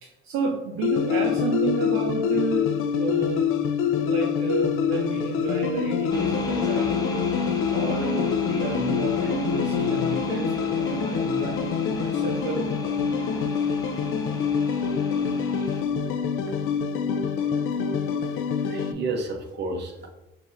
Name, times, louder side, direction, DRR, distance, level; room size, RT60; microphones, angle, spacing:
voice 1, 0.0-3.5 3.9-7.3 7.7-12.7, right 4 dB, 85° right, 0 dB, 0.6 m, -30 dB
sound 1, 0.8-18.9, left 7 dB, 75° left, 0.4 m, -26 dB
sound 2, 6.1-15.8, left 2 dB, 20° left, 0.7 m, -34 dB
voice 2, 18.3-20.1, right 3 dB, 55° right, 4 dB, 0.8 m, -32 dB
5.8 x 2.7 x 2.5 m, 0.97 s
cardioid pair, 120°, 21 cm